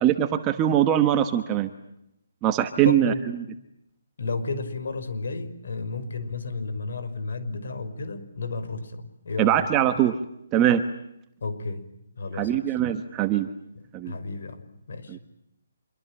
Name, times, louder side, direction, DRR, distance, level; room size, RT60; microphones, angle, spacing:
voice 1, 0.0-1.7 2.4-3.1 9.4-10.2 10.5-10.8 12.4-13.5 13.9-14.1 15.1-15.2, right 11 dB, 15° right, 8 dB, 1.1 m, -22 dB
voice 2, 2.8-3.3 4.2-9.7 11.4-11.9 12.2-12.7 13.7-14.6 14.9-15.2, left 3 dB, 60° left, 10 dB, 5.6 m, -32 dB
26.5 x 24.0 x 9.0 m, 0.79 s
hypercardioid pair, 175°, 0 cm